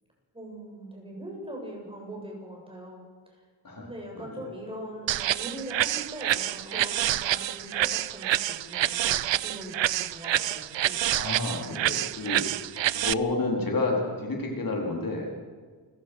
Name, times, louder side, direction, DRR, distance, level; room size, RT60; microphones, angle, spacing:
voice 1, 0.3-3.4 3.8-11.0, right 1 dB, 10° right, -1 dB, 7.5 m, -41 dB
sound 1, 5.1-13.1, right 12 dB, 80° right, 0.6 m, -27 dB
voice 2, 11.1-12.4 12.9-15.3, left 2 dB, 50° left, 0 dB, 4.2 m, -29 dB
28.5 x 16.0 x 6.4 m, 1.5 s
wide cardioid pair, 150°, 43 cm